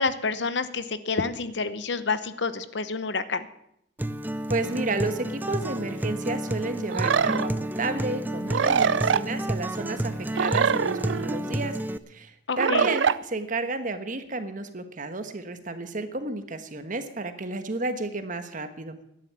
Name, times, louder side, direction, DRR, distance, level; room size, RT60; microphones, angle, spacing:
voice 1, 0.0-3.5 12.5-12.9, left 4 dB, 65° left, 13 dB, 0.9 m, -28 dB
Acoustic guitar, 4.0-12.0, right 1 dB, 10° right, 0.5 m, -30 dB
voice 2, 4.5-11.8 12.1-19.0, right 2 dB, 45° right, 9 dB, 1.3 m, -32 dB
sound 1, 6.9-7.4 8.5-9.2 10.3-11.4 12.6-13.2, right 6 dB, 75° right, 0.5 m, -23 dB
12.0 x 10.5 x 8.5 m, 0.76 s
head